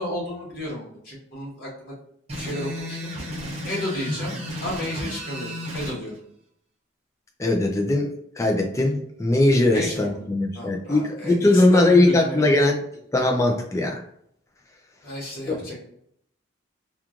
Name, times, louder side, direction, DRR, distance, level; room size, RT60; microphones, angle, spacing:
voice 1, 0.0-1.9 2.4-3.1 3.6-4.3 4.6-6.1 9.7-10.2 10.5-12.5 15.0-15.8, left 1 dB, 45° left, -4 dB, 1.1 m, -32 dB
sound 1, 2.3-6.0, equal, 30° right, 0.6 m, -33 dB
voice 2, 7.4-12.8 13.1-14.0 15.5-15.6, left 2 dB, 15° left, 2 dB, 0.3 m, -20 dB
3.0 x 2.3 x 2.4 m, 0.70 s
head